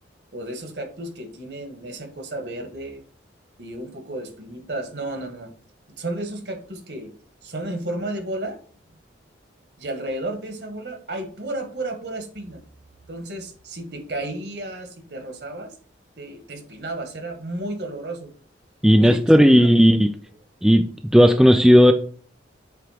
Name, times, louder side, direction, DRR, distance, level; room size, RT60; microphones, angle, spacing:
voice 1, 0.3-3.0 3.6-5.5 6.0-7.1 7.4-8.6 9.8-12.6 13.1-15.7 16.2-18.3 19.0-19.7, right 1 dB, 60° right, 5 dB, 1.7 m, -32 dB
voice 2, 18.8-20.1 20.6-20.8 21.1-21.9, equal, 5° right, 6 dB, 0.4 m, -13 dB
7.8 x 3.6 x 5.0 m, 0.43 s
head